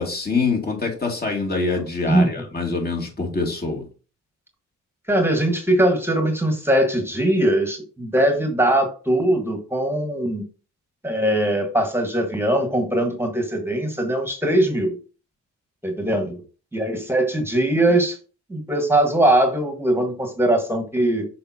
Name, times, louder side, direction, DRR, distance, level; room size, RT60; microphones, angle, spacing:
voice 1, 0.0-3.8, left 3 dB, 30° left, 1 dB, 2.7 m, -25 dB
voice 2, 5.1-10.4 11.0-15.0 15.8-16.4 16.7-18.2 18.5-21.3, right 1 dB, 10° right, 4 dB, 1.5 m, -21 dB
6.9 x 5.2 x 2.8 m, 0.35 s
cardioid pair, 90°, 30 cm